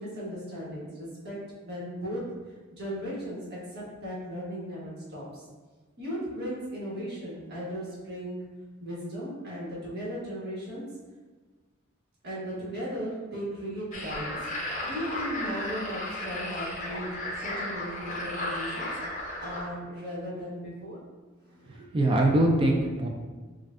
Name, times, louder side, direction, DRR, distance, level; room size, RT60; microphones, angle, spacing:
voice 1, 0.0-2.2 2.7-5.5 6.0-8.4 8.8-10.8 12.2-17.2 17.4-18.9 19.4-21.0 21.4-21.8, equal, 55° right, -7 dB, 1.3 m, -37 dB
sound 1, 13.9-19.6, left 1 dB, 40° left, 0.7 m, -34 dB
voice 2, 21.7-23.1, right 1 dB, 25° right, 1 dB, 0.3 m, -23 dB
5.4 x 2.5 x 2.5 m, 1.4 s
head